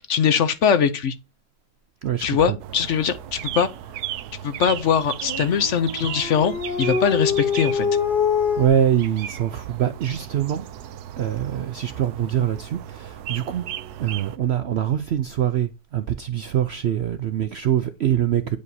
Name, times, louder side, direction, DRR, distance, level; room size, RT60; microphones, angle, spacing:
voice 1, 0.1-1.2 2.2-3.7 4.4-7.9, left 7 dB, 60° left, 0.9 m, -21 dB
voice 2, 2.0-2.6 8.6-10.7 11.2-13.7 14.0-18.6, right 10 dB, 70° right, 0.6 m, -24 dB
sound 1, 2.6-14.4, right 11 dB, 85° right, 1.2 m, -36 dB
Dog, 5.2-8.7, left 6 dB, 35° left, 1.0 m, -24 dB
9.5 x 5.1 x 2.7 m
omnidirectional pair, 1.6 m